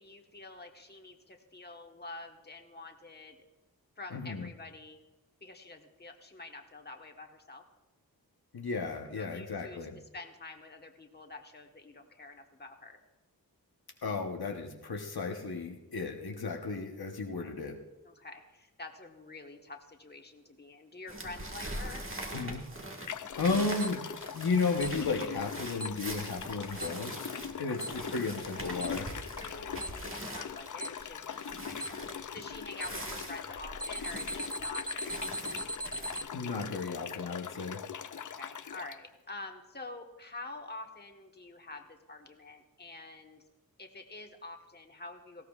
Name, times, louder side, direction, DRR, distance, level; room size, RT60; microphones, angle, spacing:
voice 1, 0.0-3.4 4.0-5.0 5.4-7.6 9.1-13.0 16.5-17.5 18.0-22.1 27.4-27.8 29.3-35.6 38.1-43.4 43.8-45.5, left 2 dB, 25° left, 3 dB, 1.3 m, -47 dB
voice 2, 4.1-4.5 8.5-10.0 14.0-17.8 22.3-22.6 23.0-23.1 23.4-24.1 24.3-27.3 27.6-29.1 36.3-37.8, left 4 dB, 80° left, 2 dB, 1.1 m, -34 dB
sound 1, 21.1-36.2, right 1 dB, 35° right, 1.6 m, -43 dB
sound 2, 22.3-22.4 23.1-39.0, left 7 dB, 55° left, 0.5 m, -42 dB
Alarm, 23.8-23.9 24.8-24.9 25.8-25.9 26.8-26.9 27.8-27.9 28.8-28.9 29.8-29.9 30.8-30.9 31.8-31.9 32.8-32.9 33.8-36.2, right 1 dB, 10° right, 0.3 m, -37 dB
18.5 x 16.0 x 2.4 m, 1.0 s
wide cardioid pair, 75°, 37 cm